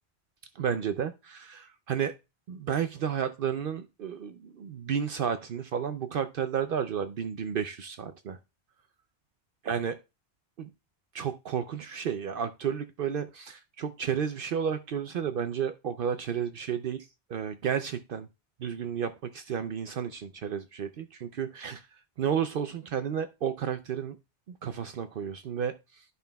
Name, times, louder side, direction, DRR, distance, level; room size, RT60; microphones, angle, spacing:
voice 1, 0.6-2.1 2.5-8.4 9.6-10.0 10.6-10.7 11.1-18.3 18.6-21.8 22.2-24.2 24.6-25.7, right 8 dB, 65° right, 0.7 m, -32 dB
12.5 x 5.4 x 2.2 m
omnidirectional pair, 1.1 m